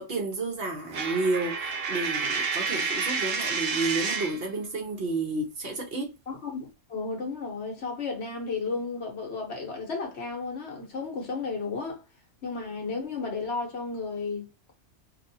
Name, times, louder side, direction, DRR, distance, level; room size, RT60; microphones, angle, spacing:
voice 1, 0.0-6.1, right 3 dB, 55° right, 1.1 m, -31 dB
Coin (dropping), 0.9-4.4, right 5 dB, 75° right, 0.9 m, -29 dB
voice 2, 6.3-12.0 12.4-14.7, left 4 dB, 60° left, 1.3 m, -33 dB
3.0 x 2.6 x 2.7 m
omnidirectional pair, 1.2 m